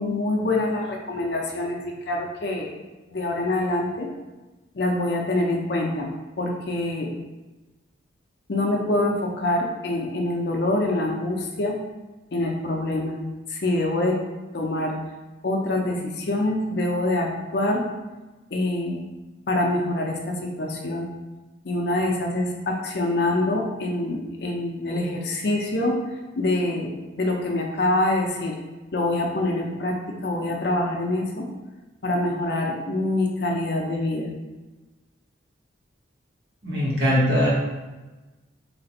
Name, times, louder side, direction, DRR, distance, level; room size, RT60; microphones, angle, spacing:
voice 1, 0.0-1.8 2.1-2.7 3.1-4.1 4.7-6.1 6.4-7.1 8.5-11.7 12.3-13.2 13.5-14.1 14.5-14.9 15.4-17.3 17.5-17.8 18.5-19.1 19.5-21.1 21.6-26.0 26.4-28.5 28.9-29.9 30.2-31.5 32.0-34.3, left 2 dB, 55° left, 0 dB, 0.5 m, -25 dB
voice 2, 36.6-37.5, equal, 60° right, -7 dB, 1.3 m, -21 dB
3.2 x 2.5 x 4.1 m, 1.2 s
head